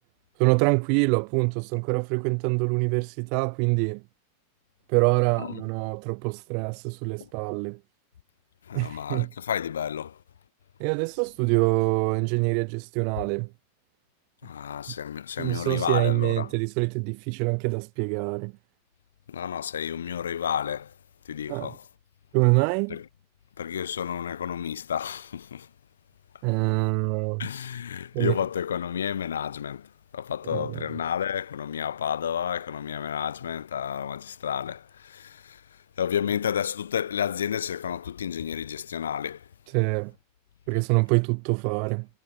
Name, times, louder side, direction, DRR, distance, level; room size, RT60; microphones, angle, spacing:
voice 1, 0.4-4.0 4.9-7.8 8.7-9.3 10.8-13.5 15.4-18.5 21.5-21.7 22.3-23.0 26.4-27.5 28.1-28.4 30.5-30.8 39.7-40.1 40.7-42.1, right 40 dB or more, 45° right, 1.7 m, -25 dB
voice 2, 8.7-10.2 14.4-16.5 19.3-20.9 21.2-21.8 22.9-23.0 23.6-25.7 27.4-39.5, left 8 dB, 65° left, 2.3 m, -31 dB
figure-of-eight pair, 90°, 0 cm